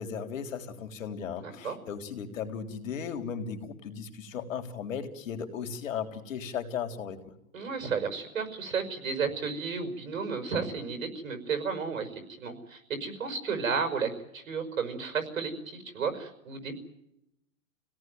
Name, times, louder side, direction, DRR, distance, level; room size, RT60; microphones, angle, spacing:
voice 1, 0.0-7.2, left 7 dB, 70° left, 6 dB, 3.6 m, -36 dB
voice 2, 1.4-1.8 7.5-16.7, right 5 dB, 75° right, 7 dB, 5.6 m, -33 dB
28.0 x 17.5 x 9.3 m, 0.86 s
hypercardioid pair, 150°, 41 cm